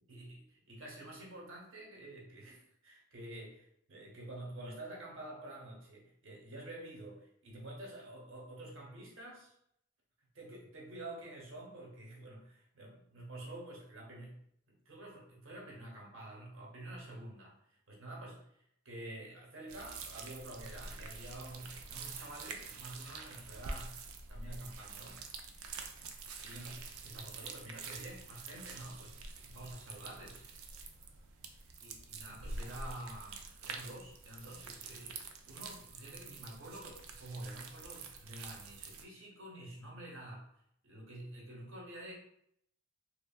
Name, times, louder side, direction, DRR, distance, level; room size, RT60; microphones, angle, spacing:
voice 1, 0.1-9.5 10.3-17.6 17.9-18.5 18.8-24.0 24.3-25.3 26.4-26.8 27.0-30.4 31.8-40.5 40.8-42.2, right 1 dB, 65° right, -2 dB, 0.8 m, -48 dB
sound 1, 19.7-39.0, right 4 dB, 90° right, 0.4 m, -47 dB
3.2 x 2.2 x 2.2 m, 0.72 s
head